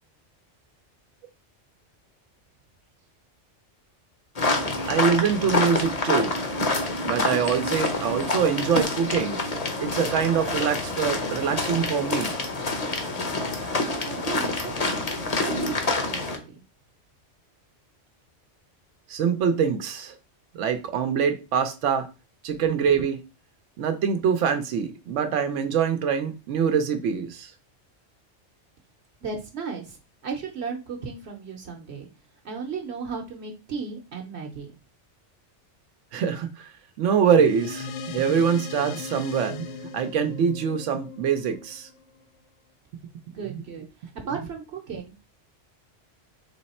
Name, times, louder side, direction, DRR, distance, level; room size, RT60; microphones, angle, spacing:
sound 1, 4.4-16.4, left 2 dB, 40° left, 0.8 m, -27 dB
voice 1, 4.9-6.3 7.1-9.4 9.8-12.3 13.5-13.6 13.9-14.0 19.1-20.2 20.5-22.1 22.4-23.2 23.8-27.5 36.1-36.7 37.0-39.7 39.9-41.9 43.5-43.6, right 7 dB, 90° right, 0.9 m, -24 dB
voice 2, 14.1-15.0 15.4-16.6 29.2-32.1 32.4-34.7 43.3-45.3, right 5 dB, 65° right, 1.0 m, -35 dB
sound 2, 37.4-42.2, left 4 dB, 80° left, 0.9 m, -37 dB
3.5 x 3.1 x 4.1 m
omnidirectional pair, 1.2 m